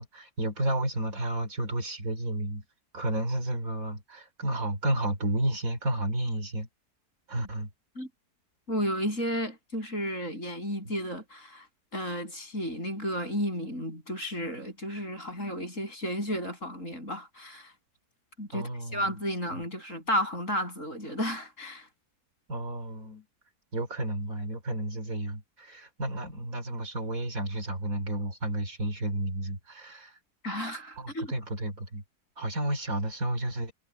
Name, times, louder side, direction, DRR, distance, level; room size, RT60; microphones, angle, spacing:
voice 1, 0.0-2.6 2.9-6.7 7.3-7.7 18.5-19.2 19.5-19.6 22.5-23.3 23.7-30.2 31.0-32.0 32.4-33.7, right 1 dB, 60° right, 4.0 m, -32 dB
voice 2, 8.7-11.7 11.9-17.7 18.4-21.9 30.4-31.3, equal, 50° left, 8.2 m, -33 dB
omnidirectional pair, 1.7 m